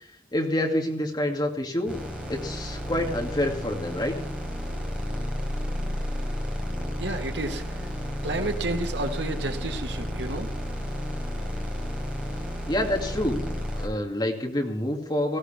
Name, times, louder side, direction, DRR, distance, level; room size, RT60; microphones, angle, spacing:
voice 1, 0.3-2.0 2.3-4.1 12.7-13.4 13.7-15.4, left 1 dB, 25° left, 1 dB, 2.3 m, -27 dB
sound 1, 1.9-13.9, equal, 5° right, 4.0 m, -32 dB
voice 2, 7.0-7.9 8.2-10.5, right 2 dB, 75° right, 5 dB, 1.6 m, -31 dB
19.5 x 16.0 x 3.5 m, 0.68 s
head